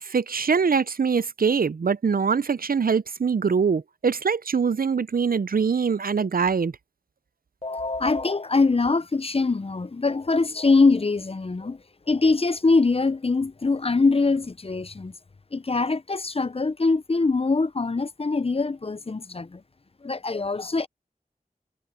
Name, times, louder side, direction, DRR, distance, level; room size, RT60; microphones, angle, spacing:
voice 1, 0.0-6.7, right 5 dB, 75° right, 0.5 m, -23 dB
voice 2, 7.6-11.8 12.1-15.1 15.5-19.6 20.0-20.9, left 3 dB, 40° left, 0.5 m, -23 dB
wide cardioid pair, 40°, 15 cm